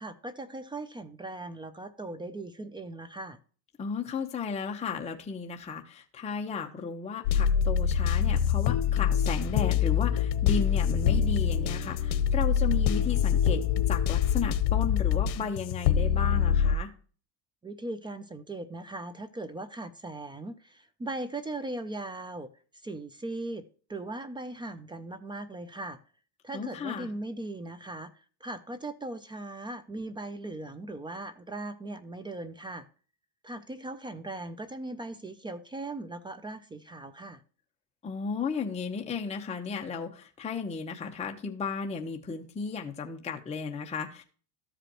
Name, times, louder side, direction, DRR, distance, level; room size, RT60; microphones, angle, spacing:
voice 1, 0.0-3.4 17.6-22.5 22.8-23.6 23.9-26.0 26.4-28.1 28.4-32.9 33.4-37.4, right 2 dB, 10° right, 13 dB, 0.3 m, -39 dB
voice 2, 3.8-13.6 13.9-16.9 26.5-27.1 38.0-44.2, left 5 dB, 15° left, 2 dB, 0.8 m, -34 dB
sound 1, 7.2-16.8, left 8 dB, 70° left, 1.0 m, -25 dB
13.5 x 5.0 x 2.9 m, 0.40 s
supercardioid pair, 120°, 49 cm